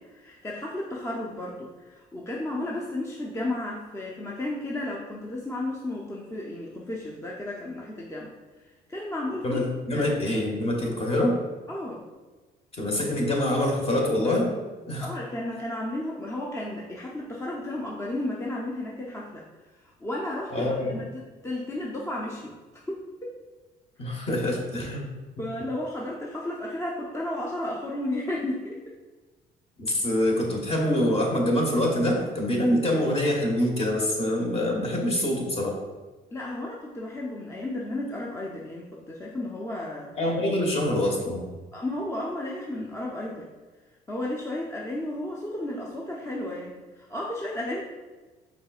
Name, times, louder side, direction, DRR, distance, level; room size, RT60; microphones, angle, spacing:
voice 1, 0.0-8.3 8.6-9.6 9.9-10.1 11.7-12.0 15.0-19.4 19.8-23.3 24.0-24.1 25.4-28.8 36.3-40.1 41.7-43.5 44.1-47.8, left 1 dB, 15° left, -3 dB, 0.5 m, -33 dB
voice 2, 9.4-11.4 12.8-14.5 14.9-15.1 20.5-21.0 24.0-25.1 29.8-35.8 40.2-41.4, left 1 dB, 35° left, 0 dB, 1.1 m, -25 dB
5.3 x 4.2 x 2.4 m, 1.3 s
cardioid pair, 110°, 17 cm